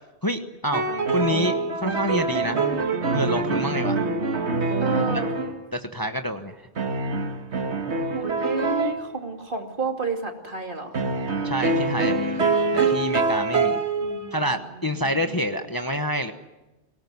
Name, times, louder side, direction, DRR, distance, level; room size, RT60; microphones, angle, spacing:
voice 1, 0.2-0.8 1.1-2.6 3.1-4.0 5.7-6.5 11.4-13.8 14.3-16.3, equal, 20° left, 6 dB, 1.1 m, -27 dB
sound 1, 0.7-5.6 6.8-9.0 10.9-14.4, right 3 dB, 75° right, 2.1 m, -25 dB
voice 2, 1.1-1.6 4.8-5.3 8.1-11.0 14.0-15.4, right 4 dB, 50° right, 3 dB, 2.9 m, -31 dB
24.5 x 18.5 x 9.6 m, 1.1 s
omnidirectional pair, 1.1 m